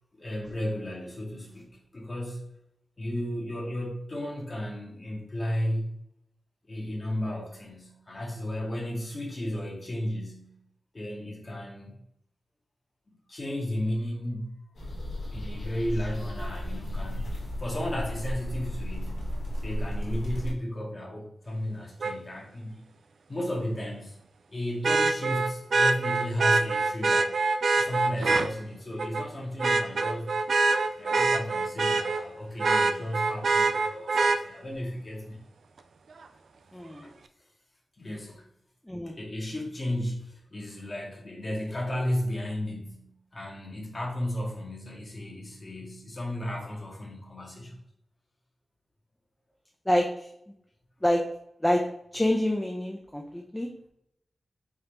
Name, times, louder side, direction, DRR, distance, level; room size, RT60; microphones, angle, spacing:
voice 1, 0.2-2.5 3.0-6.0 6.7-10.5 10.9-11.9 13.3-14.6 15.3-19.3 19.6-22.9 23.3-24.2 24.5-27.4 27.8-30.3 31.0-35.4 37.0-37.1 38.0-38.5 39.1-47.8, left 1 dB, 35° left, -2 dB, 1.0 m, -34 dB
sound 1, 14.7-20.5, equal, 80° left, 1.4 m, -34 dB
Vehicle horn car horn honking, 22.0-22.1 24.8-28.5 29.0-29.2 29.6-32.2 32.6-34.4 36.2-36.3, right 3 dB, 70° right, 0.3 m, -24 dB
voice 2, 36.7-37.0 38.8-39.1 49.9-50.3 51.0-51.2 51.6-51.8 52.1-53.7, left 1 dB, 10° left, 1 dB, 0.5 m, -26 dB
4.8 x 3.1 x 3.0 m, 0.74 s
wide cardioid pair, 115°, 0 cm